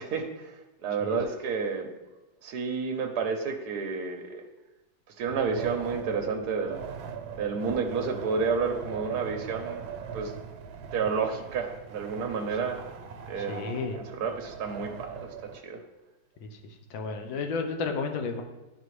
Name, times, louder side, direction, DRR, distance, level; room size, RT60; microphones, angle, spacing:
voice 1, 0.0-1.9 2.4-4.4 5.2-6.8 7.3-9.8 10.1-10.3 10.9-12.8 13.2-15.8, right 5 dB, 70° right, 4 dB, 1.0 m, -31 dB
Wind, 5.2-15.6, right 7 dB, 90° right, 1.4 m, -40 dB
voice 2, 13.4-14.0 16.4-16.5 16.9-18.4, left 4 dB, 80° left, 5 dB, 1.5 m, -32 dB
10.5 x 4.2 x 3.1 m, 1.1 s
omnidirectional pair, 2.1 m